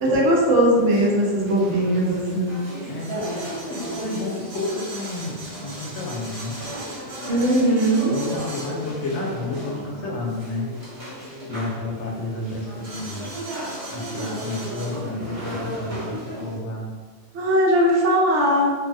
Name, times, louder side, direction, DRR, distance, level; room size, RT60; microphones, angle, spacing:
voice 1, 0.0-2.6 7.3-8.1 17.3-18.7, right 1 dB, 80° right, -3 dB, 1.0 m, -19 dB
sound 1, 0.7-16.6, right 1 dB, 60° right, 1.2 m, -34 dB
voice 2, 2.9-6.6 8.1-10.7 11.5-13.3 13.9-16.9, left 2 dB, 75° left, -1 dB, 0.9 m, -31 dB
2.7 x 2.2 x 2.5 m, 1.4 s
omnidirectional pair, 1.2 m